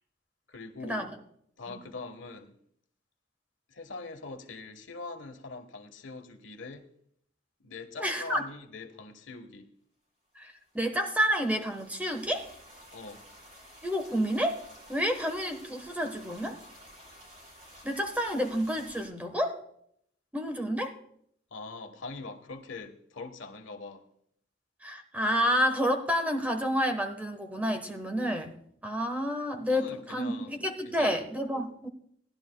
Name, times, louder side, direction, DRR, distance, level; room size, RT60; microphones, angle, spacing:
voice 1, 0.5-1.1 1.6-2.6 3.7-6.9 7.6-9.7 12.9-13.2 21.5-24.0 29.6-31.3, left 3 dB, 85° left, 1.3 m, -43 dB
voice 2, 8.0-8.5 10.4-12.5 13.8-14.6 14.9-16.6 17.8-19.6 20.3-20.9 24.8-28.5 28.8-31.9, equal, 10° right, 1.2 m, -29 dB
sound 1, 10.7-19.1, equal, 40° right, 5.1 m, -52 dB
18.5 x 11.5 x 2.3 m
head